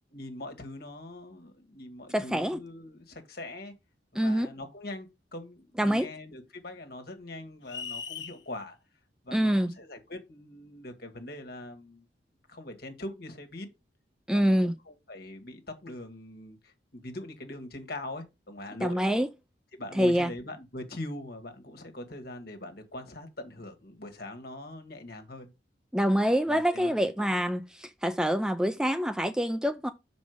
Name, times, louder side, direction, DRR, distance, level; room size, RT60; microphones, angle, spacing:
voice 1, 0.1-3.7 4.2-8.8 9.2-12.1 12.5-13.7 14.3-19.0 19.7-25.5 26.5-26.9 27.3-27.4, left 1 dB, 55° left, 1.8 m, -42 dB
voice 2, 2.1-2.6 4.2-4.5 5.8-6.1 9.3-9.7 14.3-14.7 18.8-19.3 19.9-20.3 25.9-29.9, equal, 5° right, 0.4 m, -26 dB
sound 1, 7.7-8.4, left 6 dB, 75° left, 1.1 m, -38 dB
6.5 x 5.2 x 5.1 m
head